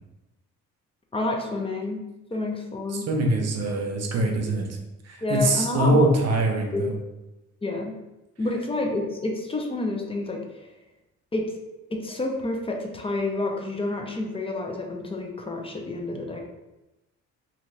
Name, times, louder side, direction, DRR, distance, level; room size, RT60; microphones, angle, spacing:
voice 1, 1.1-2.0 2.3-3.1 5.2-6.1 6.7-6.8 7.6-7.9 8.4-10.4 11.3-11.5 11.9-16.4, left 2 dB, 20° left, 2 dB, 0.5 m, -29 dB
voice 2, 2.9-4.7 5.0-7.0, right 1 dB, 55° right, 2 dB, 0.7 m, -23 dB
2.6 x 2.5 x 3.1 m, 0.99 s
cardioid pair, 90°, 30 cm